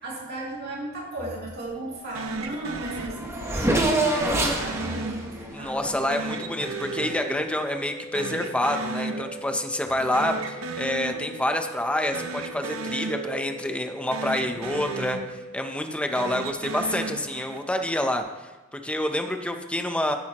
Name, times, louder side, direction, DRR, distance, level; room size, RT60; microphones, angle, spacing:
voice 1, 0.0-6.0 10.0-10.4, right 1 dB, 50° right, -5 dB, 2.5 m, -36 dB
sound 1, 2.1-3.7 4.1-5.7 6.1-7.9 8.1-9.7 9.9-11.7 12.1-13.9 14.1-15.7 16.1-17.8, right 3 dB, 75° right, 0.8 m, -35 dB
Race car auto racing / Accelerating revving vroom, 2.4-2.5 2.7-6.7, right 1 dB, 15° right, 1.1 m, -27 dB
voice 2, 5.5-20.2, left 1 dB, 5° left, 5 dB, 0.7 m, -28 dB
sound 2, 5.7-15.7, equal, 25° left, 1.9 m, -42 dB
16.0 x 8.8 x 3.0 m, 1.1 s
head